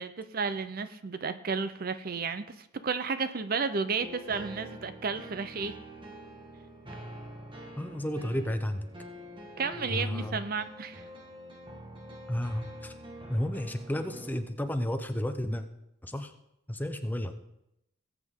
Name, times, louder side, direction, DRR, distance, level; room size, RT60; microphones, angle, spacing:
voice 1, 0.0-5.8 9.6-11.0, right 5 dB, 45° right, 11 dB, 0.5 m, -32 dB
sound 1, 4.0-14.4, equal, 25° right, 1.4 m, -46 dB
voice 2, 7.8-8.8 9.9-10.4 12.3-12.9 13.3-15.6 16.0-16.3 16.7-17.3, left 1 dB, 10° left, 7 dB, 0.6 m, -32 dB
19.0 x 8.2 x 3.7 m, 0.84 s
head